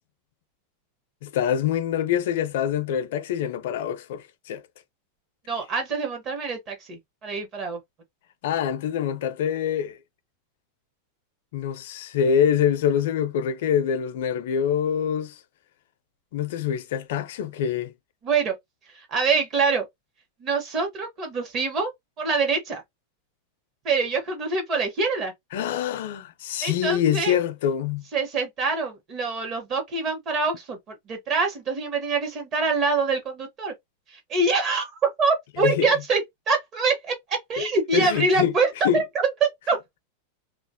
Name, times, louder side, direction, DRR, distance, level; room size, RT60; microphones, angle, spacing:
voice 1, 1.2-4.6 8.4-10.0 11.5-15.4 16.3-17.9 25.5-28.0 35.6-35.9 37.6-38.5 38.8-39.0, left 9 dB, 70° left, 0.5 m, -25 dB
voice 2, 5.5-7.8 18.2-18.5 18.9-19.8 20.4-21.9 22.2-22.8 23.8-25.3 26.6-27.4 28.1-33.7 34.1-34.9 35.2-36.2 36.5-39.8, right 4 dB, 35° right, 1.0 m, -25 dB
2.4 x 2.0 x 2.6 m
supercardioid pair, 140°, 0 cm